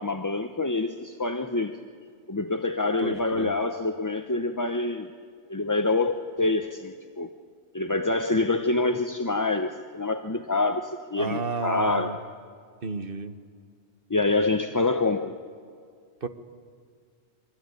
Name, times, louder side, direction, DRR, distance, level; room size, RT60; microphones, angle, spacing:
voice 1, 0.0-1.7 2.3-5.1 5.5-7.3 7.7-12.2 14.1-15.3, left 3 dB, 20° left, 6 dB, 0.7 m, -26 dB
voice 2, 3.0-3.5 11.2-12.2 12.8-13.4 16.2-16.3, right 4 dB, 45° right, 8 dB, 1.4 m, -32 dB
25.5 x 24.0 x 9.7 m, 2.1 s
omnidirectional pair, 1.3 m